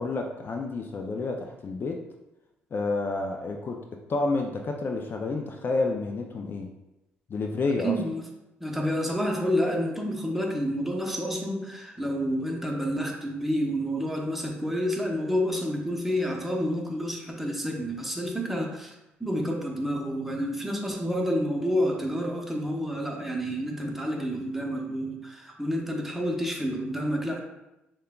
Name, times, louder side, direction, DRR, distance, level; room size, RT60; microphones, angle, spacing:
voice 1, 0.0-2.0 2.7-3.8 4.1-6.7 7.3-7.9, left 3 dB, 45° left, 2 dB, 0.4 m, -29 dB
voice 2, 7.8-8.2 8.6-18.9 19.2-27.4, equal, 5° right, 0 dB, 0.9 m, -29 dB
6.4 x 2.3 x 2.3 m, 0.94 s
supercardioid pair, 65°, 5 cm